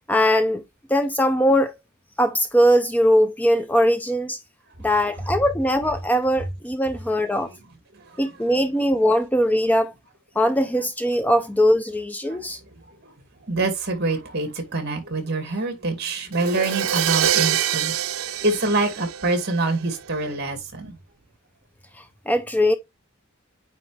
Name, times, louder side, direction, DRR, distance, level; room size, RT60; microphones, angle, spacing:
voice 1, 0.1-0.6 0.9-1.7 2.2-4.4 4.8-7.5 8.2-9.9 10.4-12.6 22.3-22.8, equal, 10° left, 0.5 m, -20 dB
voice 2, 12.3-13.1 13.5-21.0, right 2 dB, 50° right, 2.3 m, -26 dB
Crash cymbal, 16.3-20.1, right 9 dB, 85° right, 0.6 m, -25 dB
9.2 x 3.5 x 3.3 m
head